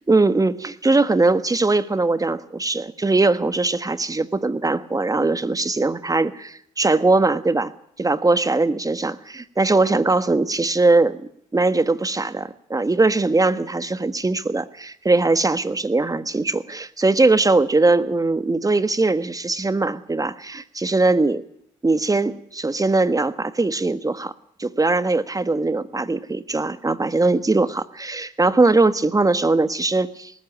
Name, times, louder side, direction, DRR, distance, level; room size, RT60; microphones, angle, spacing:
voice 1, 0.1-7.7 8.0-21.4 21.8-24.3 24.6-30.3, right 3 dB, 20° right, 13 dB, 1.4 m, -20 dB
19.5 x 14.0 x 9.8 m, 0.70 s
hypercardioid pair, 50°, 16 cm